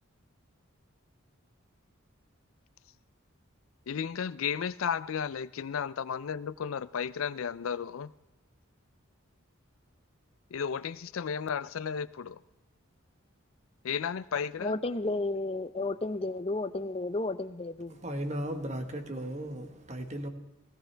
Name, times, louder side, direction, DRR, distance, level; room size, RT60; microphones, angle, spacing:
voice 1, 3.9-8.1 10.5-12.4 13.8-14.8, left 7 dB, 80° left, 17 dB, 0.4 m, -33 dB
voice 2, 14.6-18.0, left 2 dB, 25° left, 13 dB, 0.6 m, -32 dB
voice 3, 17.9-20.3, right 1 dB, 35° right, 6 dB, 1.4 m, -36 dB
18.5 x 16.5 x 3.4 m, 1.0 s
head